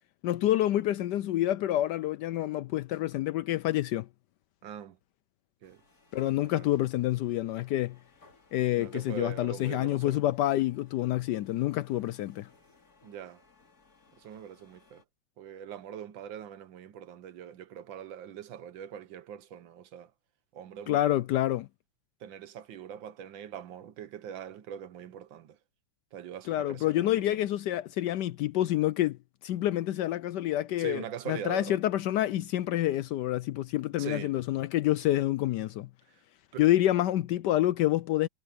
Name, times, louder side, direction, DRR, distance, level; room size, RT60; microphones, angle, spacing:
voice 1, 0.2-4.1 6.1-8.0 8.5-12.5 20.9-21.7 26.5-35.9 36.6-38.3, left 14 dB, 75° left, 1.0 m, -28 dB
voice 2, 4.6-5.0 5.6-5.8 6.2-6.7 8.8-10.2 13.0-13.4 14.2-15.0 15.4-20.1 20.5-21.2 22.2-25.6 26.1-27.1 30.8-31.8 34.0-34.3 36.5-36.6, right 9 dB, 70° right, 1.6 m, -42 dB
sound 1, 5.6-15.0, left 4 dB, 45° left, 3.5 m, -63 dB
omnidirectional pair, 2.2 m